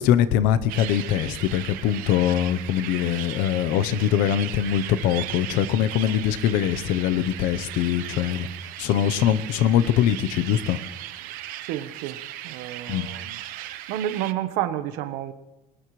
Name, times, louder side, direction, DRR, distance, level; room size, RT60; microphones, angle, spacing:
voice 1, 0.0-8.5 8.8-10.8 12.9-13.1, left 10 dB, 70° left, 12 dB, 0.9 m, -22 dB
sound 1, 0.7-14.3, right 14 dB, 70° right, 0.9 m, -37 dB
voice 2, 11.6-12.2 12.4-13.4 13.9-15.3, right 12 dB, 90° right, 11 dB, 1.2 m, -30 dB
22.5 x 19.0 x 3.2 m, 0.97 s
cardioid pair, 170°, 15 cm